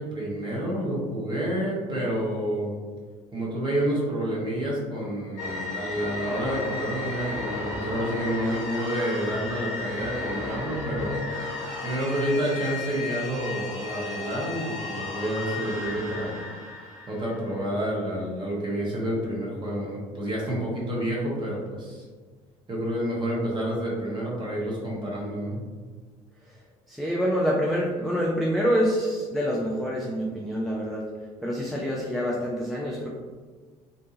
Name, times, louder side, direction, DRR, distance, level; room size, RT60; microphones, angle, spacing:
voice 1, 0.0-2.7 3.3-11.2 11.8-16.4 17.1-22.0 22.7-25.6, right 1 dB, 25° right, -4 dB, 1.0 m, -29 dB
sound 1, 5.4-17.9, left 3 dB, 45° left, 1.1 m, -34 dB
voice 2, 26.9-31.0 31.4-33.1, equal, ahead, -4 dB, 0.4 m, -26 dB
2.7 x 2.2 x 2.7 m, 1.5 s
figure-of-eight pair, 60°, 19 cm